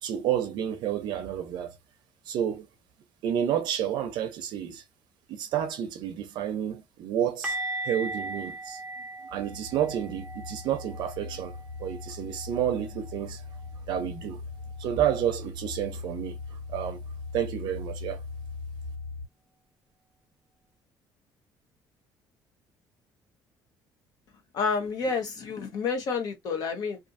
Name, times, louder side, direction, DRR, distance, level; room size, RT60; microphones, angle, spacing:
voice 1, 0.0-1.7 2.3-2.7 3.2-4.8 5.3-7.6 7.8-8.8 9.2-13.5 13.9-14.4 14.8-16.4 16.7-17.0 17.3-18.2, right 10 dB, 65° right, 0.6 m, -30 dB
sound 1, 7.4-13.2 13.5-13.7 14.0-14.2 17.4-17.5, right 2 dB, 5° right, 0.7 m, -38 dB
sound 2, 9.3-19.3, left 4 dB, 80° left, 1.5 m, -40 dB
voice 2, 24.5-27.0, left 5 dB, 50° left, 0.9 m, -29 dB
2.6 x 2.6 x 2.5 m
cardioid pair, 170°, 8 cm